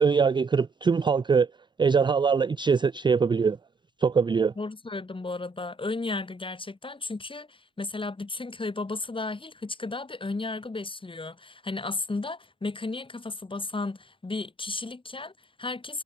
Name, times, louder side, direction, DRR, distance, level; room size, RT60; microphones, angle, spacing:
voice 1, 0.0-1.5 1.8-3.6 4.0-4.5, right 5 dB, 15° right, 0.3 m, -22 dB
voice 2, 4.6-16.0, left 3 dB, 15° left, 1.8 m, -34 dB
cardioid pair, 90°, 30 cm